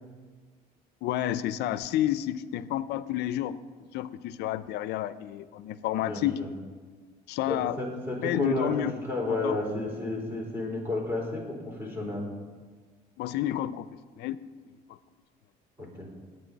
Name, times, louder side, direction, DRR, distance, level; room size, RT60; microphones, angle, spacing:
voice 1, 1.0-3.6 3.9-6.4 7.3-7.8 8.2-8.9 9.3-9.6 13.2-13.9 14.2-14.4, left 13 dB, 80° left, 15 dB, 0.5 m, -30 dB
voice 2, 5.9-6.5 7.4-8.7 9.0-12.3 15.8-16.1, left 2 dB, 15° right, -2 dB, 4.3 m, -32 dB
19.0 x 9.0 x 4.0 m, 1.5 s
cardioid pair, 110°, 17 cm